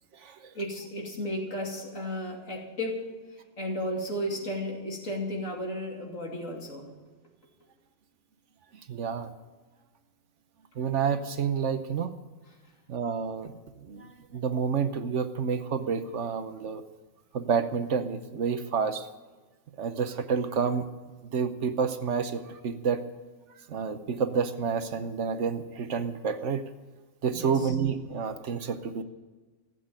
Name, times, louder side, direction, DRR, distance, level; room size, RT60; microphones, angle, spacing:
voice 1, 0.5-3.1 3.6-6.9 27.3-27.7, equal, 75° left, 0 dB, 3.0 m, -34 dB
voice 2, 8.9-9.3 10.8-12.1 12.9-13.5 13.8-14.1 14.3-16.8 17.3-19.1 19.8-20.9 21.3-23.0 23.7-26.6 27.2-29.0, right 6 dB, 65° right, 10 dB, 1.1 m, -29 dB
15.0 x 8.0 x 8.8 m, 1.3 s
omnidirectional pair, 1.4 m